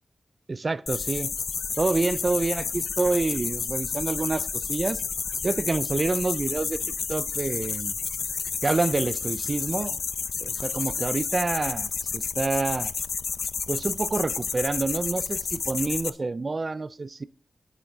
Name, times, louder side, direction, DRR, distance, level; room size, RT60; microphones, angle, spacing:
voice 1, 0.5-1.3 1.8-5.0 5.4-7.9 8.6-10.0 10.4-12.9 13.7-17.2, right 3 dB, 40° right, 0.4 m, -27 dB
sound 1, 0.9-16.1, left 5 dB, 75° left, 0.6 m, -31 dB
11.0 x 9.1 x 3.6 m
cardioid pair, 70°, 0 cm